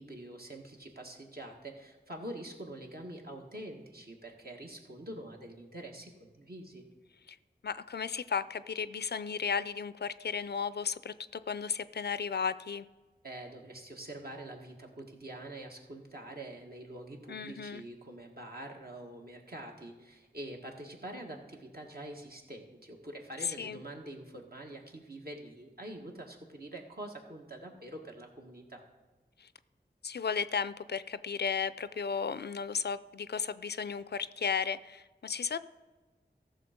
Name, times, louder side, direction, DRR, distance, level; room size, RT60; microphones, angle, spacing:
voice 1, 0.0-6.9 13.2-28.8, right 1 dB, 60° right, 1 dB, 1.8 m, -45 dB
voice 2, 7.6-12.9 17.3-17.8 23.4-23.8 29.4-29.5 30.0-35.6, left 6 dB, 70° left, 15 dB, 0.4 m, -34 dB
14.5 x 6.4 x 5.1 m, 1.3 s
wide cardioid pair, 50°, 18 cm